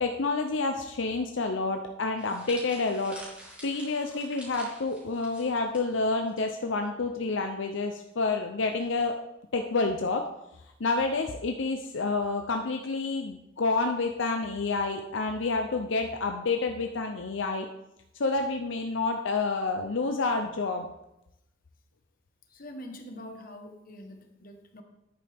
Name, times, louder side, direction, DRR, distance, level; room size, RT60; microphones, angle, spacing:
voice 1, 0.0-3.2 3.6-9.1 9.5-10.3 10.8-17.7 18.2-20.9, left 3 dB, 75° left, 5 dB, 0.7 m, -29 dB
sound 1, 2.2-6.4 6.7-6.9 7.8-8.1, equal, 5° right, 2.7 m, -47 dB
voice 2, 22.5-24.8, left 1 dB, 45° left, 4 dB, 1.3 m, -44 dB
10.5 x 8.7 x 3.5 m, 0.89 s
head